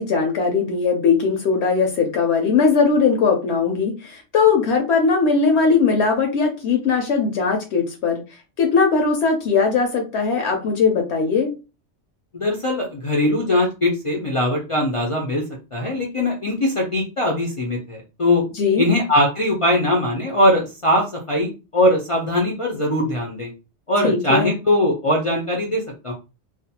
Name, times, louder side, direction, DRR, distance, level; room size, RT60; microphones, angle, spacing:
voice 1, 0.0-8.2 8.6-11.5 18.6-18.8 24.0-24.5, left 5 dB, 70° left, 3 dB, 0.8 m, -19 dB
voice 2, 12.3-15.4 15.7-18.4 18.8-23.5 23.9-26.1, left 1 dB, 55° left, -1 dB, 0.3 m, -21 dB
2.4 x 2.1 x 2.7 m, 0.30 s
omnidirectional pair, 1.2 m